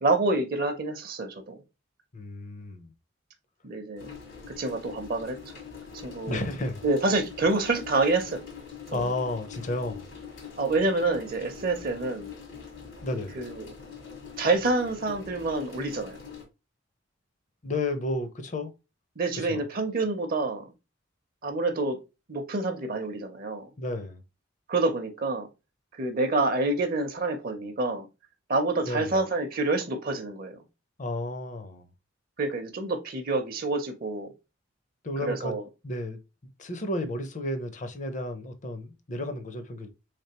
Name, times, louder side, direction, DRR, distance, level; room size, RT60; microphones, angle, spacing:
voice 1, 0.0-1.6 3.6-4.1 4.5-5.4 6.0-6.4 6.8-8.4 8.9-9.1 10.6-12.3 13.3-13.6 14.4-16.2 19.2-20.6 21.4-22.0 22.3-23.7 24.7-25.5 25.9-28.1 28.5-30.6 32.4-34.3 35.3-35.6, right 3 dB, 50° right, 0.6 m, -27 dB
voice 2, 2.1-2.9 6.3-6.8 8.9-10.1 13.0-13.4 17.6-18.7 19.4-19.6 23.8-24.2 28.8-29.1 31.0-31.9 35.0-35.5 35.8-36.2 36.6-39.9, left 2 dB, 40° left, 0.6 m, -32 dB
sound 1, 4.0-16.4, left 6 dB, 80° left, 1.7 m, -43 dB
3.5 x 3.3 x 2.8 m
head